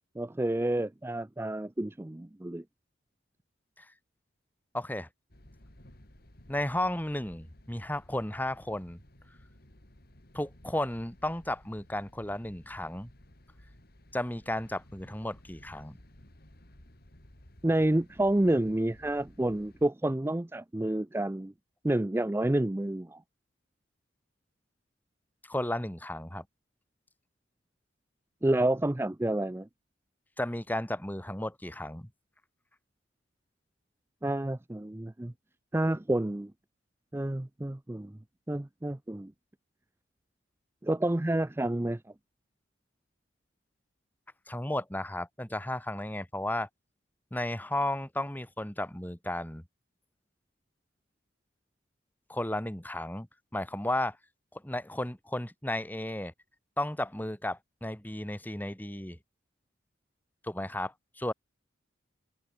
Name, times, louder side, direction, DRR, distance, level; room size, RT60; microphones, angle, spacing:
voice 1, 0.2-2.6 17.6-21.5 21.8-23.2 28.4-29.7 34.2-35.3 35.7-36.5 37.1-38.2 38.5-39.3 40.8-42.0, right 1 dB, 10° right, 0.4 m, -29 dB
voice 2, 4.7-5.1 6.5-9.0 10.3-13.1 14.1-16.0 25.5-26.4 30.4-32.1 44.5-46.7 47.3-49.6 52.3-53.3 53.5-54.2 54.5-56.3 56.8-59.2 60.4-61.3, left 1 dB, 10° left, 1.8 m, -34 dB
sound 1, 5.3-19.9, left 1 dB, 50° left, 3.3 m, -56 dB
head